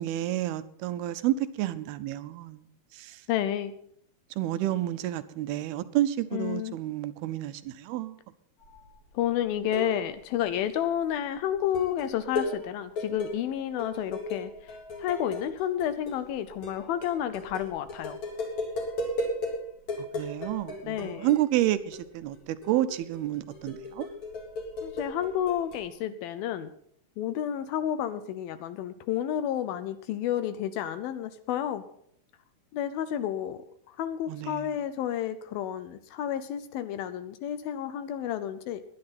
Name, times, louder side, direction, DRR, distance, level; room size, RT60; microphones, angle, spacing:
voice 1, 0.0-3.2 4.4-8.2 20.1-24.1 34.3-34.7, right 13 dB, 80° right, 2.5 m, -30 dB
voice 2, 3.3-3.7 6.3-6.8 9.1-18.2 20.9-21.3 24.8-26.7 27.2-31.8 32.7-38.8, left 10 dB, 75° left, 2.4 m, -31 dB
sound 1, 8.6-8.9 9.3-10.2 10.5-10.9 11.5-19.6 19.9-22.1 22.3-25.9, left 2 dB, 45° left, 4.6 m, -36 dB
20.5 x 10.5 x 4.2 m
omnidirectional pair, 4.7 m